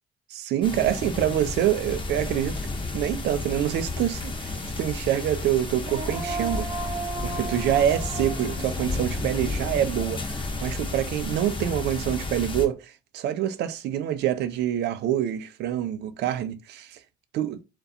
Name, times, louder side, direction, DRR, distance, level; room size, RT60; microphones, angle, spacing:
voice 1, 0.3-2.5 2.9-6.7 7.2-17.0 17.3-17.6, right 11 dB, 70° right, 0.4 m, -26 dB
sound 1, 0.6-12.7, left 3 dB, 25° left, 0.9 m, -32 dB
Female singing, 5.7-10.9, right 3 dB, 20° right, 0.8 m, -36 dB
2.4 x 2.2 x 2.7 m
supercardioid pair, 60°, 18 cm